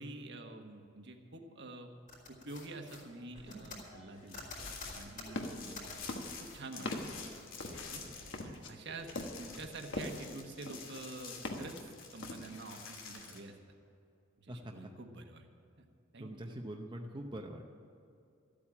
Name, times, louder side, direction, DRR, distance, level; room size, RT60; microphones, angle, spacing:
voice 1, 0.0-1.9 2.3-4.4 4.9-6.0 6.4-7.3 7.7-8.0 8.4-13.5 14.4-15.5 15.8-15.9 16.1-16.6, right 2 dB, 60° right, 4 dB, 1.3 m, -48 dB
sound 1, 2.1-5.9 6.4-6.6 7.0-8.4 8.7-9.5 10.0-10.2, left 2 dB, 40° left, 3.6 m, -51 dB
sound 2, 4.3-8.7 9.0-13.4, left 5 dB, 80° left, 2.3 m, -49 dB
sound 3, 4.9-5.7 6.1-10.3 10.7-11.8 12.2-12.7, left 2 dB, 60° left, 1.4 m, -42 dB
voice 2, 16.2-17.6, right 1 dB, 20° right, 1 dB, 0.7 m, -43 dB
13.0 x 8.7 x 8.7 m, 2.5 s
head